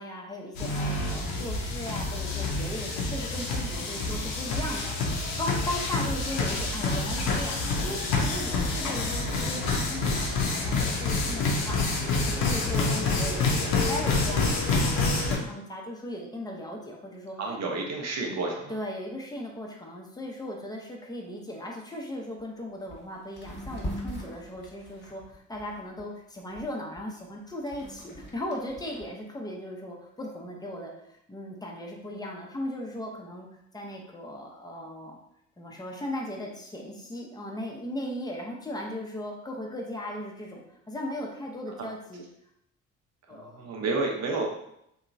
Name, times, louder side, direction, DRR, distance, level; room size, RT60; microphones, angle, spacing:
voice 1, 0.0-17.4 18.7-30.9 31.3-33.5 33.7-35.2 35.6-42.2 43.3-43.7, left 1 dB, 10° left, -1 dB, 0.7 m, -37 dB
sound 1, 0.6-15.4, left 3 dB, 80° left, 0.6 m, -27 dB
voice 2, 17.4-18.8 43.3-44.5, right 3 dB, 45° right, 0 dB, 0.7 m, -30 dB
sound 2, 22.4-22.5 22.9-23.0 23.3-26.0 26.5-29.1, equal, 30° left, 1.2 m, -40 dB
2.8 x 2.3 x 2.5 m, 0.78 s
hypercardioid pair, 50°, 36 cm